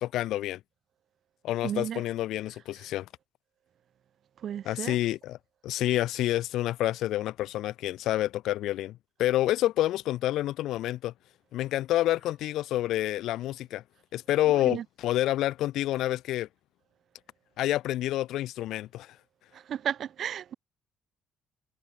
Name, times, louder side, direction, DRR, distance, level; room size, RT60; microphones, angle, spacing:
voice 1, 0.0-0.6 1.4-3.1 4.7-5.4 5.6-11.1 11.5-13.8 14.1-16.5 17.6-19.2, left 14 dB, 75° left, 0.4 m, -28 dB
voice 2, 1.6-2.0 4.4-5.0 14.5-14.8 19.5-20.5, right 9 dB, 50° right, 0.4 m, -34 dB
cardioid pair, 155°, 0 cm